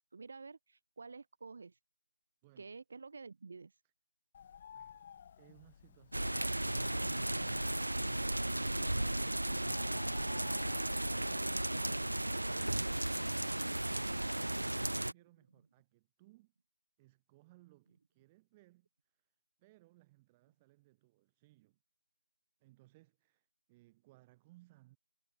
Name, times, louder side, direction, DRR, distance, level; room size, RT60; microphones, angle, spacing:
voice 1, 0.0-1.8 2.6-3.8, right 4 dB, 50° right, 2.7 m, -50 dB
voice 2, 2.4-2.8 4.7-5.0 14.2-16.5 17.0-18.9 19.6-21.8 22.6-25.0, right 20 dB, 15° right, 5.0 m, -65 dB
Bird, 4.3-11.5, left 8 dB, 30° left, 3.1 m, -56 dB
sound 1, 6.1-15.1, right 1 dB, 90° right, 0.4 m, -35 dB
figure-of-eight pair, 160°, 0 cm